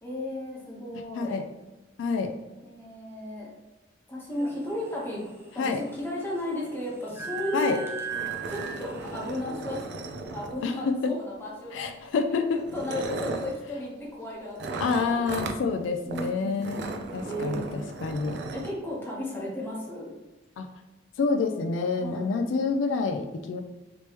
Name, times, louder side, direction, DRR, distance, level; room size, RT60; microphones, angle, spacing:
voice 1, 0.0-1.4 2.6-3.5 4.1-5.2 5.5-7.9 8.5-9.8 10.3-11.9 12.5-15.6 16.0-17.9 18.5-20.1 22.0-22.3, left 1 dB, 10° left, -5 dB, 0.9 m, -35 dB
voice 2, 1.1-1.5 2.0-2.3 5.6-5.8 7.5-7.8 10.6-11.1 11.7-12.6 14.8-18.4 20.6-20.7 21.2-23.6, left 4 dB, 75° left, 6 dB, 0.3 m, -28 dB
sound 1, 4.3-9.4, right 6 dB, 15° right, 0.6 m, -39 dB
sound 2, 7.4-7.5 7.7-7.8 8.1-10.9 11.9-12.1 12.6-13.6 14.6-15.6 16.1-16.3 16.6-18.7, right 2 dB, 60° right, 0.4 m, -36 dB
3.3 x 3.0 x 2.9 m, 1.1 s
head